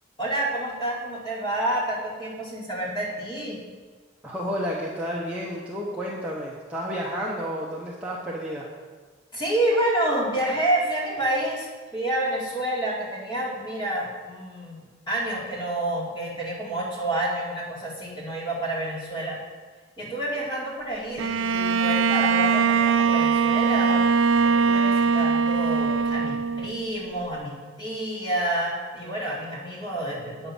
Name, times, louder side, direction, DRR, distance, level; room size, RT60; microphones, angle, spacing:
voice 1, 0.2-3.6 9.3-19.4 20.0-24.0 24.4-30.5, right 1 dB, 20° left, -5 dB, 2.4 m, -29 dB
voice 2, 4.2-8.7, equal, 5° right, -5 dB, 0.8 m, -31 dB
Bowed string instrument, 21.2-26.9, right 5 dB, 75° right, 0.4 m, -21 dB
8.6 x 5.7 x 7.1 m, 1.4 s
head